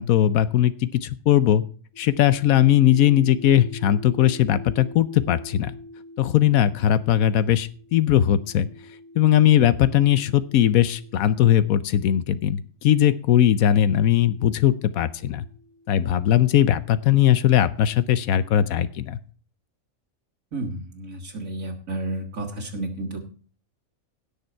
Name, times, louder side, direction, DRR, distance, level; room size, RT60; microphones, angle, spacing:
voice 1, 0.0-1.6 2.0-5.7 6.2-8.7 9.2-15.4 15.9-19.2, left 11 dB, 85° left, 15 dB, 1.1 m, -19 dB
sound 1, 1.9-12.3 13.2-16.9, left 1 dB, 60° left, 7.8 m, -46 dB
voice 2, 20.5-23.2, right 2 dB, 70° right, 1 dB, 2.2 m, -31 dB
17.0 x 6.7 x 4.5 m, 0.41 s
omnidirectional pair, 1.5 m